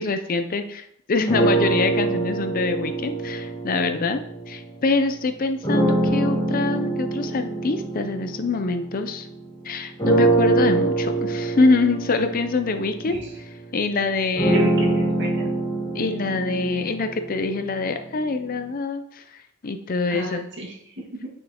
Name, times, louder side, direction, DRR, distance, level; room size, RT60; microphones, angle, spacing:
voice 1, 0.0-4.2 4.5-9.3 9.6-13.2 13.7-14.7 15.9-20.4, left 3 dB, 40° left, 8 dB, 0.5 m, -25 dB
sound 1, 1.3-4.8 5.6-9.4 10.0-18.0, right 2 dB, 25° left, 2.1 m, -24 dB
voice 2, 14.5-15.5 20.1-21.3, right 1 dB, 55° right, -2 dB, 1.8 m, -32 dB
8.5 x 6.2 x 2.9 m, 0.72 s
head